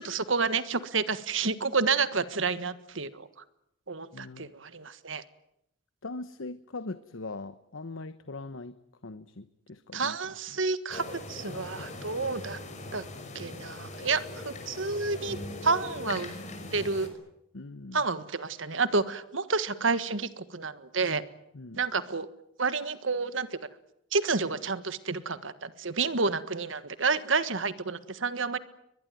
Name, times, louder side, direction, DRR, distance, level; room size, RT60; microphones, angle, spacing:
voice 1, 0.0-3.3 3.9-5.2 9.9-12.6 12.9-13.1 13.3-15.4 15.6-16.3 16.7-17.1 17.9-21.2 21.8-22.3 22.6-23.6 24.1-28.6, right 4 dB, 70° right, 13 dB, 1.6 m, -29 dB
voice 2, 4.1-4.5 6.0-8.8 9.0-10.2 17.5-18.0 21.5-21.8, left 3 dB, 75° left, 13 dB, 1.0 m, -41 dB
sound 1, 10.9-17.1, left 2 dB, 35° left, 6.0 m, -40 dB
23.0 x 21.5 x 9.3 m, 0.79 s
head